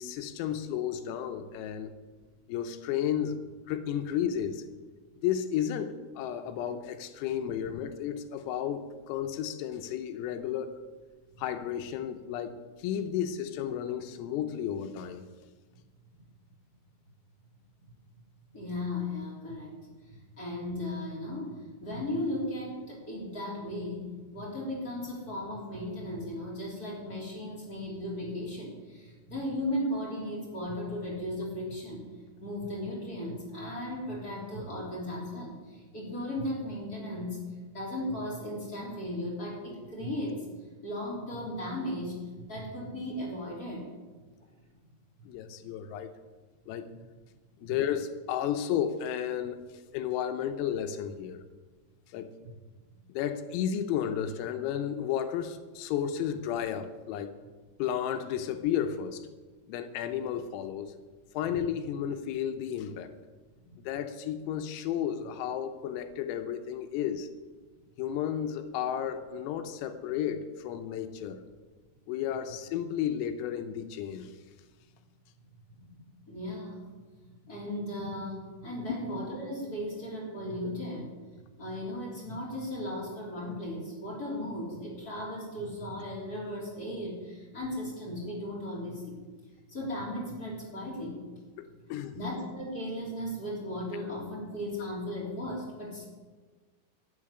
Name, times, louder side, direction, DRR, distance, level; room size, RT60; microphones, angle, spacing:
voice 1, 0.0-1.9 2.5-3.4 3.7-4.6 5.2-10.8 11.4-15.3 45.3-46.1 46.7-46.9 47.6-49.6 49.9-51.4 52.1-52.3 53.1-57.4 57.8-59.3 59.7-60.9 61.3-63.1 63.9-67.3 68.0-71.4 72.1-74.3 91.6-92.2, left 9 dB, 85° left, 8 dB, 3.4 m, -33 dB
voice 2, 18.5-19.7 20.0-21.6 21.8-32.0 32.4-37.4 37.7-40.4 40.8-43.9 47.6-47.7 75.8-76.8 77.2-81.1 81.6-89.2 89.4-91.2 92.1-96.1, left 1 dB, 20° left, -4 dB, 2.8 m, -36 dB
12.5 x 7.4 x 9.8 m, 1.3 s
omnidirectional pair, 6.0 m